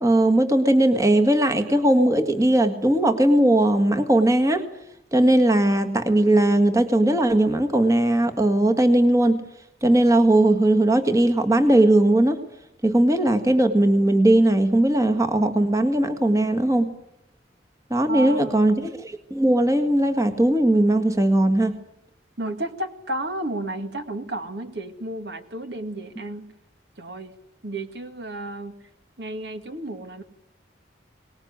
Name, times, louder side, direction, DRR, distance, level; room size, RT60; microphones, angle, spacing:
voice 1, 0.0-4.7 5.1-9.4 9.8-12.4 12.8-16.9 17.9-21.8, right 1 dB, 15° right, 6 dB, 1.7 m, -19 dB
voice 2, 18.1-18.7 22.4-26.5 27.0-27.3 27.6-28.7 29.2-30.2, right 1 dB, 60° right, 7 dB, 2.0 m, -32 dB
24.0 x 20.0 x 9.5 m, 0.81 s
head